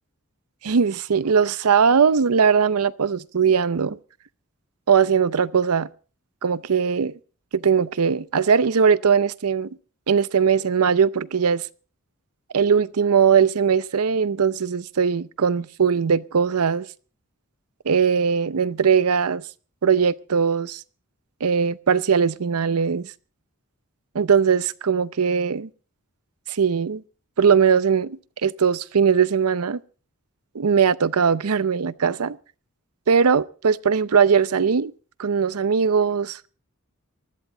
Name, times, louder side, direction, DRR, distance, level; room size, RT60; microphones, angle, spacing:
voice 1, 0.6-4.0 4.9-5.9 6.4-7.2 7.5-9.7 10.1-11.7 12.5-16.9 17.9-19.4 19.8-20.8 21.4-23.1 24.1-25.7 26.5-27.0 27.4-29.8 30.5-32.4 33.1-34.9 35.2-36.5, right 6 dB, 85° right, 0.6 m, -20 dB
20.0 x 13.5 x 3.9 m
head